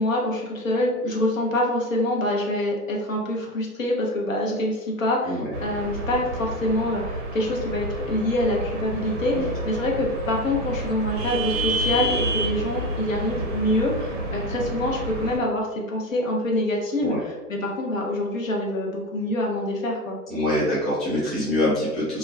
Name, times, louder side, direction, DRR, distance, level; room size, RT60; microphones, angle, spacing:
voice 1, 0.0-20.2, left 1 dB, 55° left, -1 dB, 0.7 m, -25 dB
sound 1, 5.5-15.4, right 1 dB, 50° right, 0.6 m, -29 dB
voice 2, 20.3-22.2, left 1 dB, ahead, -11 dB, 0.3 m, -24 dB
2.3 x 2.1 x 3.1 m, 1.2 s
hypercardioid pair, 165°, 48 cm